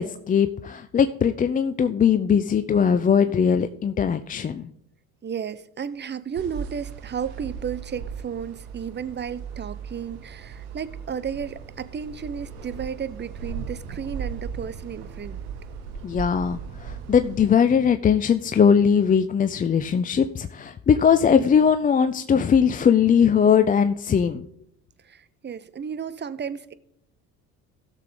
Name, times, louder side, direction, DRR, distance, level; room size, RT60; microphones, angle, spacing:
voice 1, 0.0-4.7 16.0-24.4, left 7 dB, 20° left, 0.4 m, -20 dB
voice 2, 5.2-15.4 25.0-26.7, right 7 dB, 25° right, 0.8 m, -33 dB
sound 1, 6.3-17.5, right 6 dB, 75° right, 1.4 m, -37 dB
16.0 x 6.7 x 3.7 m
hypercardioid pair, 60°, 43 cm